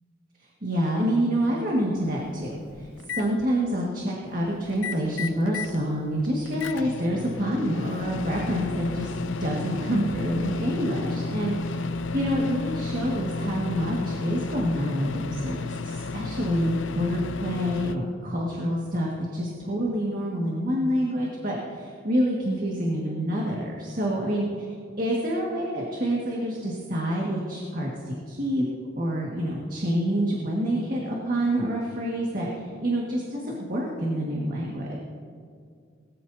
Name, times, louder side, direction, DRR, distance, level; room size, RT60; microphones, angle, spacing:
voice 1, 0.6-2.5 2.8-2.9 3.1-9.1 9.4-11.9 12.1-24.4 25.0-28.7 29.0-35.0, equal, 45° right, -3 dB, 1.8 m, -27 dB
Microwave oven, 1.7-1.8 2.3-3.2 4.7-5.8 6.2-17.9, left 3 dB, 80° left, 0.6 m, -32 dB
20.0 x 14.0 x 2.8 m, 2.2 s
head